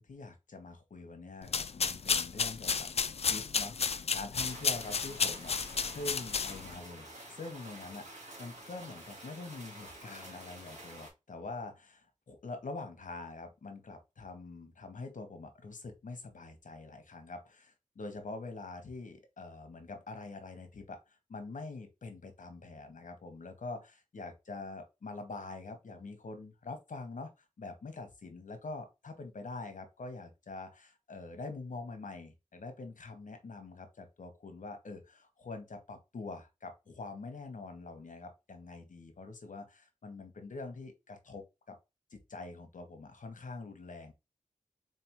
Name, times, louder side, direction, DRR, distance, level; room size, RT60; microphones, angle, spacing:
voice 1, 0.0-2.9 3.2-27.3 27.6-41.8 42.1-44.1, left 3 dB, 75° left, 6 dB, 1.0 m, -45 dB
sound 1, 1.4-6.8, left 5 dB, 50° left, 0.4 m, -32 dB
sound 2, 4.5-11.1, right 1 dB, 60° right, 2.0 m, -49 dB
3.9 x 3.4 x 2.9 m, 0.25 s
wide cardioid pair, 80°, 13 cm